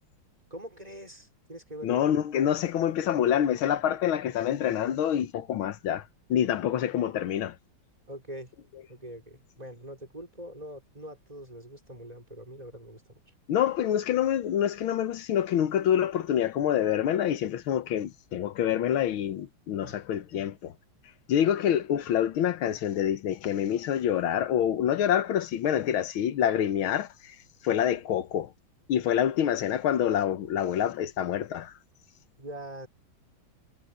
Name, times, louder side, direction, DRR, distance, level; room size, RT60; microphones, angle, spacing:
voice 1, 0.5-2.1 8.1-8.5 8.9-13.2 19.8-20.0 20.3-20.4 32.4-32.9, equal, 20° right, 5.4 m, -43 dB
voice 2, 1.8-7.6 13.5-20.7 21.3-27.4 27.6-28.5 28.9-31.7, left 10 dB, 85° left, 1.8 m, -26 dB
omnidirectional pair, 2.2 m